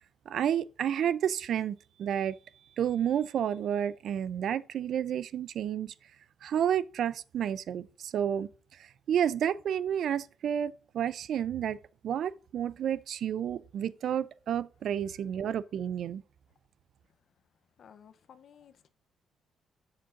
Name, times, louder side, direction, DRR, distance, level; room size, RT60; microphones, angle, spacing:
voice 1, 0.3-2.4 2.8-5.9 6.4-8.5 9.1-11.8 12.0-16.2, right 9 dB, 65° right, 0.4 m, -30 dB
voice 2, 17.8-18.9, left 8 dB, 60° left, 0.7 m, -55 dB
7.8 x 6.7 x 2.5 m
cardioid pair, 90°, 0 cm